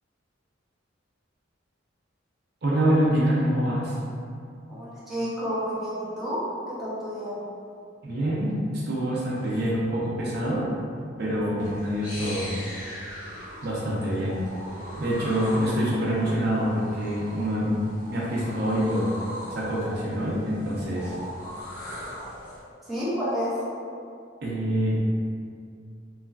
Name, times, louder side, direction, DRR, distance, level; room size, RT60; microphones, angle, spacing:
voice 1, 2.6-3.9 8.0-10.7 11.2-12.6 13.6-14.4 15.0-17.7 18.1-19.1 19.5-21.1 24.4-24.9, equal, 55° right, -6 dB, 0.6 m, -26 dB
voice 2, 4.7-7.4 22.9-23.6, equal, ahead, -11 dB, 0.6 m, -30 dB
sound 1, 11.6-22.6, equal, 45° left, 0.9 m, -40 dB
3.1 x 2.3 x 2.3 m, 2.3 s
head